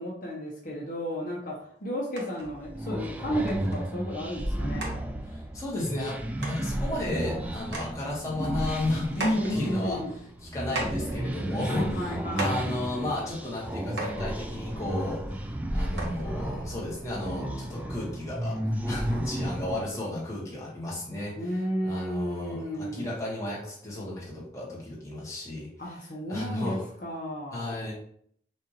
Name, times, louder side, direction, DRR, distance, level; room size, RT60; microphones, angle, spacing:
voice 1, 0.0-1.6 1.8-5.0 9.2-10.1 11.7-12.7 21.4-23.2 25.8-27.8, equal, 50° left, -3 dB, 1.0 m, -32 dB
sound 1, 2.2-2.5 3.0-3.1 3.5-3.8 4.4-4.5 4.8-4.9 6.1-6.2 6.4-6.6 7.2-7.3 7.6-7.9 8.3-9.5 10.2-10.3 10.7-11.2 11.8-12.0 12.3-12.6 13.6-13.7 14.0-14.2 15.3-15.4 16.0-16.3 17.1-17.2, right 2 dB, 80° right, 1.2 m, -35 dB
sound 2, 2.4-19.9, right 1 dB, 10° right, 0.3 m, -33 dB
voice 2, 5.3-10.0 10.5-18.6 18.9-21.4 21.8-25.7 26.3-26.9 27.5-27.9, left 1 dB, 15° left, -5 dB, 1.3 m, -34 dB
6.1 x 2.6 x 2.9 m, 0.64 s
head